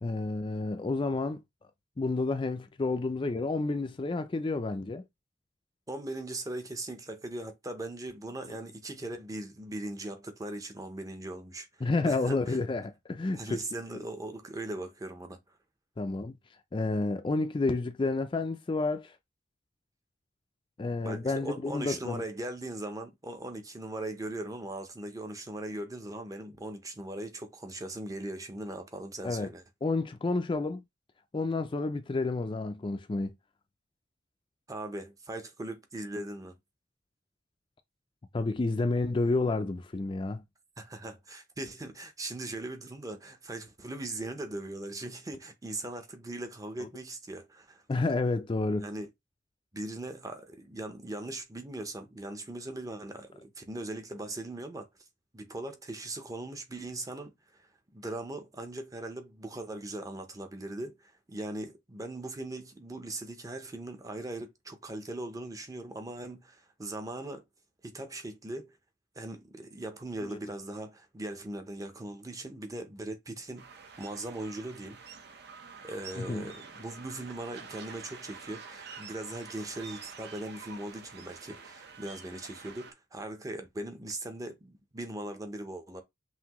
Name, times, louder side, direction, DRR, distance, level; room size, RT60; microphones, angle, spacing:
voice 1, 0.0-1.4 2.0-5.0 8.4-8.5 11.8-14.0 16.0-16.4 16.7-19.2 20.8-22.2 29.2-29.5 29.8-30.8 31.3-33.3 38.3-40.4 46.8-46.9 47.9-48.9 70.3-70.4 76.1-76.5, left 3 dB, 25° left, 0.4 m, -30 dB
voice 2, 5.9-11.7 12.0-12.6 13.3-15.4 21.0-29.6 34.7-36.6 40.8-47.8 48.8-49.1 49.7-54.9 55.3-67.4 67.8-68.8 69.2-73.7 74.0-75.0 75.8-86.0, right 1 dB, 20° right, 0.7 m, -39 dB
sound 1, 73.6-82.9, right 5 dB, 60° right, 0.8 m, -48 dB
5.7 x 2.7 x 3.0 m
head